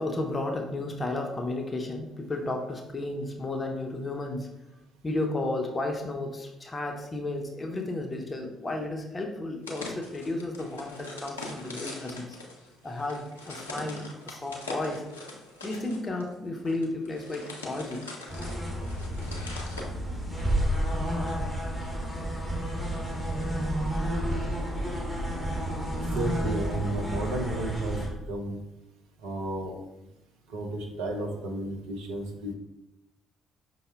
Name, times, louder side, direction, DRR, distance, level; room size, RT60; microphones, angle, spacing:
voice 1, 0.0-4.5 5.0-12.4 12.8-15.0 15.6-18.1, left 2 dB, 25° left, 2 dB, 0.6 m, -33 dB
sound 1, 9.6-19.9, left 2 dB, 85° left, 0.5 m, -42 dB
sound 2, 18.3-28.1, equal, 15° right, 1.4 m, -30 dB
voice 2, 26.1-28.6 29.2-29.8 30.5-32.5, right 1 dB, 70° right, 2 dB, 0.6 m, -32 dB
5.4 x 2.0 x 3.3 m, 0.91 s
figure-of-eight pair, 45°, 0 cm